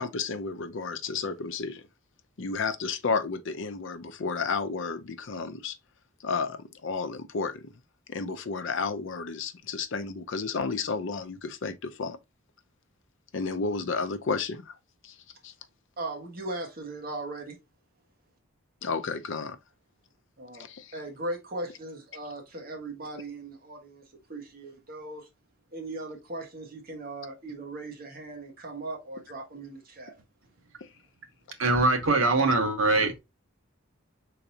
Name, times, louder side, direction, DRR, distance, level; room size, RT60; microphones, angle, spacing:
voice 1, 0.0-1.8 2.4-5.8 6.2-7.7 8.1-12.2 13.3-14.7 15.0-15.2 15.4-15.5 18.8-19.6 20.5-20.9, left 4 dB, 65° left, 0.5 m, -32 dB
voice 2, 16.0-17.6 20.4-20.7 20.9-24.0 24.3-25.3 25.7-30.1, right 2 dB, 45° right, 1.4 m, -38 dB
voice 3, 31.6-33.2, right 2 dB, 70° right, 1.0 m, -23 dB
4.6 x 3.9 x 2.7 m
head